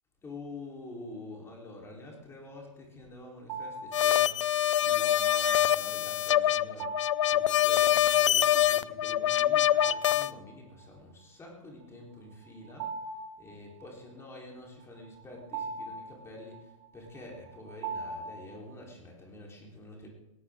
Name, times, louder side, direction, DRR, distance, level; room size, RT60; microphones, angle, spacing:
voice 1, 0.2-4.4 4.8-7.0 7.3-12.9 13.4-20.1, left 2 dB, 15° left, -1 dB, 3.9 m, -47 dB
sound 1, 3.5-4.1 6.8-7.4 9.7-10.4 10.8-10.9 12.3-13.9 14.8-18.7, right 4 dB, 45° right, 3.0 m, -40 dB
sound 2, 3.9-10.3, left 12 dB, 60° left, 0.5 m, -25 dB
20.0 x 18.0 x 3.7 m, 0.95 s
figure-of-eight pair, 105°, 17 cm